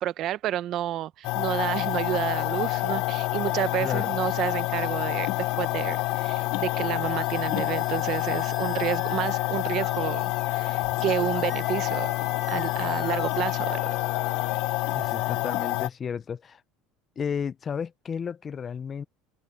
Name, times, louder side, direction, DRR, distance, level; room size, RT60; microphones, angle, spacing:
voice 1, 0.0-12.1 12.5-13.9, right 12 dB, 45° right, 0.7 m, -30 dB
sound 1, 1.2-15.9, left 20 dB, 65° left, 0.7 m, -27 dB
sound 2, 2.4-15.4, right 2 dB, 10° right, 6.1 m, -48 dB
voice 2, 3.8-4.1 14.9-16.6 17.2-19.0, left 7 dB, 25° left, 0.5 m, -32 dB
cardioid pair, 145°, 0 cm